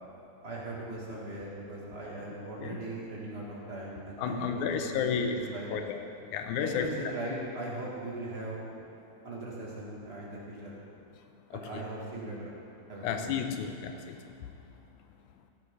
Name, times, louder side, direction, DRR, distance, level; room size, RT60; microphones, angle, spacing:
voice 1, 0.4-5.8 6.6-8.7 9.2-10.8 11.5-12.5 12.9-13.3, right 2 dB, 25° right, -5 dB, 1.9 m, -39 dB
voice 2, 4.2-5.4 5.7-6.0 6.3-6.9 11.5-11.8 13.0-14.3, left 7 dB, 85° left, 6 dB, 2.1 m, -32 dB
15.0 x 9.8 x 3.8 m, 2.9 s
omnidirectional pair, 3.6 m